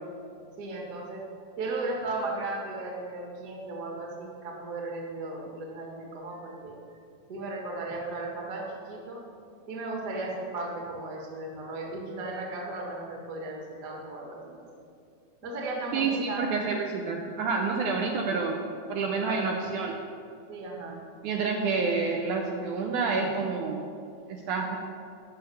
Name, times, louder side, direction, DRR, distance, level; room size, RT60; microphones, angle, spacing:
voice 1, 0.6-1.2 1.6-6.7 7.3-9.2 9.7-14.6 15.4-16.5 19.1-19.5 20.5-21.0, right 2 dB, 35° right, -1 dB, 1.4 m, -36 dB
voice 2, 15.9-18.6 18.9-20.0 21.2-23.9 24.3-24.9, right 4 dB, 75° right, 1 dB, 2.0 m, -28 dB
11.0 x 6.5 x 7.8 m, 2.4 s
omnidirectional pair, 4.1 m